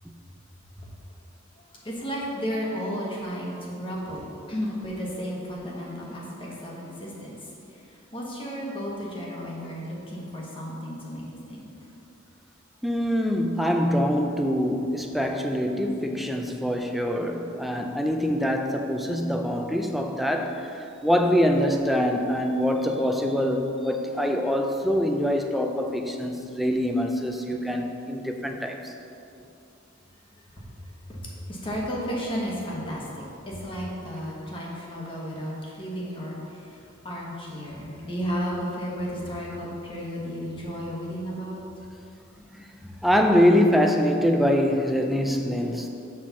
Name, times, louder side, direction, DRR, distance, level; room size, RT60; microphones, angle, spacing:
voice 1, 1.6-11.7 30.6-30.7 31.1-41.6 42.8-43.0, equal, 25° left, -4 dB, 1.3 m, -33 dB
voice 2, 12.8-20.7 21.0-28.9 43.0-46.0, equal, ahead, 3 dB, 0.4 m, -24 dB
6.3 x 4.2 x 6.0 m, 2.7 s
head